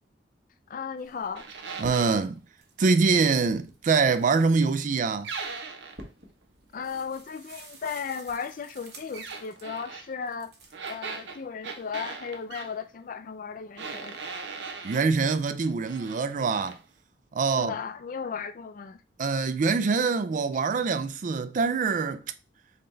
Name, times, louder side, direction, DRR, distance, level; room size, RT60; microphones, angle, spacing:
voice 1, 0.7-1.5 6.7-10.5 10.9-14.2 17.5-19.0, left 6 dB, 50° left, 0.4 m, -35 dB
sound 1, 1.0-2.3 2.6-9.8 10.3-10.9, right 2 dB, 65° right, 1.3 m, -50 dB
sound 2, 1.3-2.2 5.2-6.1 9.1-10.1 10.7-12.7 13.8-15.1 15.6-16.2 16.5-16.8, right 5 dB, 80° right, 0.7 m, -39 dB
voice 2, 1.8-2.4 2.8-5.3 14.8-16.8 17.3-17.7 19.2-22.2, right 4 dB, 45° right, 0.4 m, -24 dB
3.9 x 3.9 x 3.2 m
head